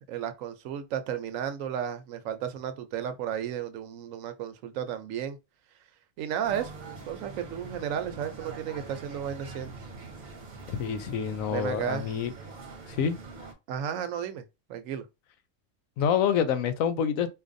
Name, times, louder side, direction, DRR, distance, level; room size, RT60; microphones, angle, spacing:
voice 1, 0.0-5.4 6.2-6.7 7.1-9.7 11.5-12.1 13.7-14.4 14.7-15.1, right 9 dB, 75° right, 1.0 m, -33 dB
sound 1, 6.4-13.5, right 3 dB, 40° right, 0.8 m, -44 dB
voice 2, 10.7-12.3 13.0-13.2 16.0-17.3, left 8 dB, 90° left, 1.0 m, -27 dB
4.3 x 2.4 x 2.6 m
omnidirectional pair, 1.4 m